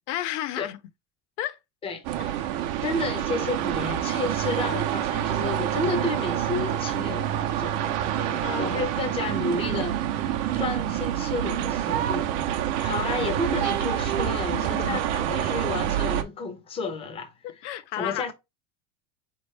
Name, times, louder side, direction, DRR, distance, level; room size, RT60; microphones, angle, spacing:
voice 1, 0.1-0.8 1.4-1.6 8.4-8.8 14.5-15.0 17.4-18.3, left 13 dB, 90° left, 0.6 m, -32 dB
voice 2, 1.8-2.5 2.8-7.8 8.1-10.2 10.6-17.3 18.0-18.3, left 3 dB, 15° left, 0.6 m, -32 dB
sound 1, 2.0-16.2, right 11 dB, 55° right, 0.6 m, -27 dB
4.2 x 3.0 x 3.2 m
cardioid pair, 155°, 35 cm